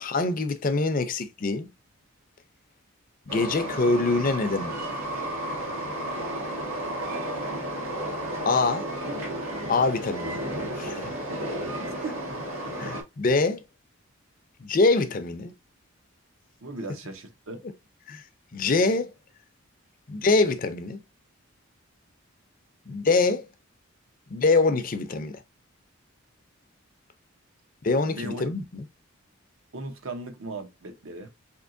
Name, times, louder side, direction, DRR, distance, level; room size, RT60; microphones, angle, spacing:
voice 1, 0.0-1.7 3.3-4.8 8.5-8.9 9.7-10.4 10.7-11.1 12.8-13.6 14.6-15.5 18.1-18.2 18.5-19.1 20.1-21.0 22.9-23.5 24.3-25.4 27.8-28.8, left 3 dB, 40° left, 0.5 m, -24 dB
Train, 3.3-13.0, right 1 dB, 85° right, 1.3 m, -32 dB
voice 2, 12.0-12.4 16.6-17.6 28.1-28.5 29.7-31.3, right 2 dB, 65° right, 0.8 m, -37 dB
4.4 x 2.8 x 2.5 m
head